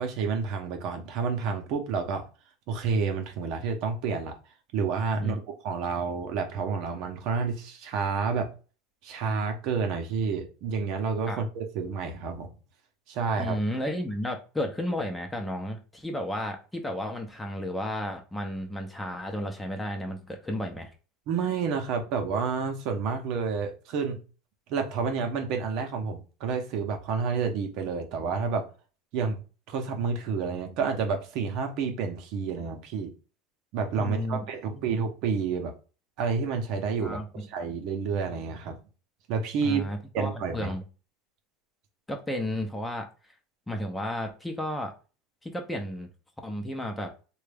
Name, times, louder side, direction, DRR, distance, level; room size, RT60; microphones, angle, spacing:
voice 1, 0.0-2.2 2.7-4.4 4.7-8.5 9.0-12.5 13.1-13.6 21.3-24.2 24.7-28.7 29.1-33.1 33.7-35.7 36.2-38.8 39.3-39.8 40.1-40.7, right 5 dB, 60° right, 0.8 m, -29 dB
voice 2, 13.4-20.9 34.0-35.0 37.0-37.5 39.6-40.8 42.1-43.1 43.7-44.9 45.4-46.1 46.4-47.1, equal, 10° left, 0.7 m, -33 dB
3.2 x 2.3 x 3.3 m
supercardioid pair, 115°, 0 cm